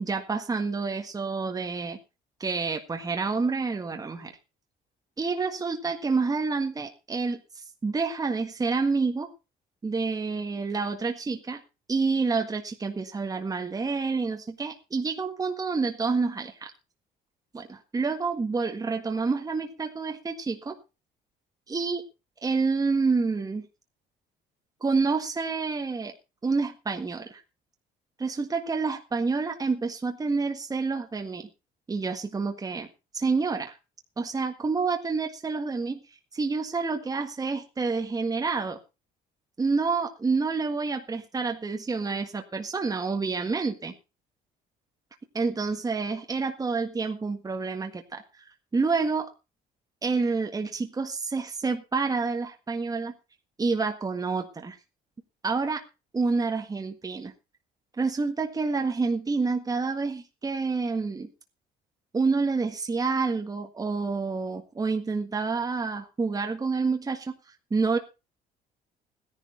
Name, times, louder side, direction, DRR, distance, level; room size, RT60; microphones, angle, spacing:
voice 1, 0.0-2.0 2.4-4.3 5.2-7.4 7.8-9.3 9.8-11.6 11.9-16.7 17.5-20.8 21.7-22.0 22.4-23.7 24.8-26.1 26.4-27.4 28.2-31.5 31.9-32.9 33.1-33.8 34.2-36.0 36.3-38.8 39.6-43.9 45.3-49.3 50.0-53.1 53.6-54.8 55.4-55.8 56.1-57.3 58.0-61.3 62.1-67.3 67.7-68.0, right 4 dB, 20° right, 4 dB, 1.6 m, -28 dB
16.0 x 10.5 x 4.3 m, 0.30 s
cardioid pair, 110°, 17 cm